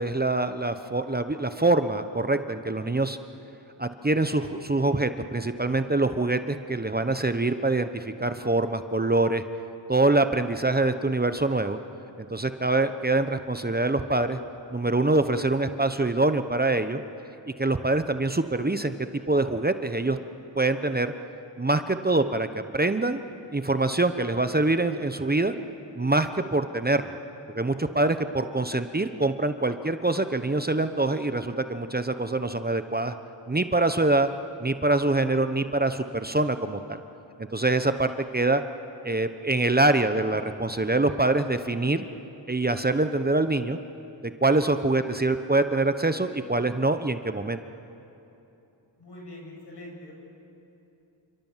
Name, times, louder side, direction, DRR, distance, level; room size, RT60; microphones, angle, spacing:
voice 1, 0.0-3.2 3.8-9.4 9.9-11.8 12.2-14.4 14.7-17.0 17.6-18.9 19.3-20.2 20.5-21.1 21.6-22.5 22.7-23.2 23.5-25.5 26.0-27.2 27.5-33.1 33.5-34.3 34.6-37.0 37.5-38.6 39.0-42.0 42.5-43.8 44.4-47.6, right 2 dB, 20° right, 9 dB, 1.0 m, -24 dB
voice 2, 49.0-50.1, left 1 dB, 70° left, -1 dB, 7.8 m, -43 dB
29.0 x 26.5 x 7.4 m, 2.9 s
cardioid pair, 60°, 43 cm